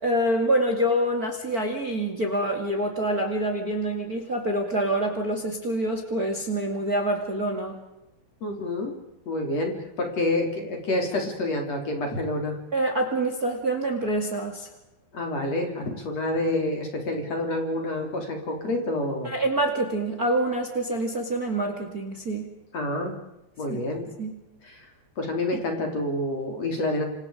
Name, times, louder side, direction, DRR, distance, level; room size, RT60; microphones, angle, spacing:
voice 1, 0.0-7.8 12.7-14.7 19.2-22.5 23.7-23.8 24.2-24.4, right 1 dB, 30° right, 4 dB, 1.7 m, -26 dB
voice 2, 8.4-8.9 9.3-12.6 15.1-19.4 22.7-23.1 23.6-24.0 24.6-24.9 25.2-27.0, left 1 dB, 35° left, 2 dB, 4.3 m, -28 dB
27.5 x 27.5 x 5.0 m, 0.90 s
omnidirectional pair, 5.3 m